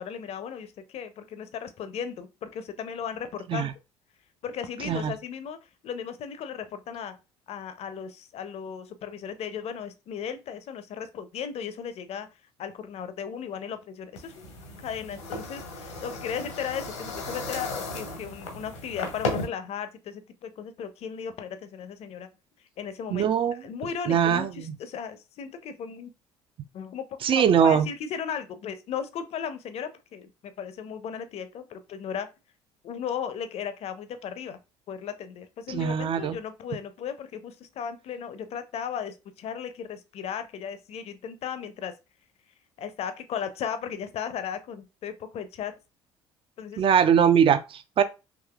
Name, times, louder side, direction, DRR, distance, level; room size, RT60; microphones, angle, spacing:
voice 1, 0.0-3.7 4.4-5.6 5.8-7.2 7.5-12.3 12.6-14.5 14.8-22.3 22.8-23.3 23.6-26.1 26.7-32.3 32.8-34.6 34.9-41.9 42.8-45.7 46.6-46.8, left 7 dB, 45° left, 0.6 m, -36 dB
sound 1, 14.2-19.4, left 2 dB, 75° left, 1.0 m, -35 dB
voice 2, 23.1-23.6 24.1-24.7 27.2-27.9 35.7-36.4 46.8-48.0, right 8 dB, 35° right, 0.5 m, -22 dB
4.8 x 3.0 x 2.4 m
figure-of-eight pair, 55°, 15 cm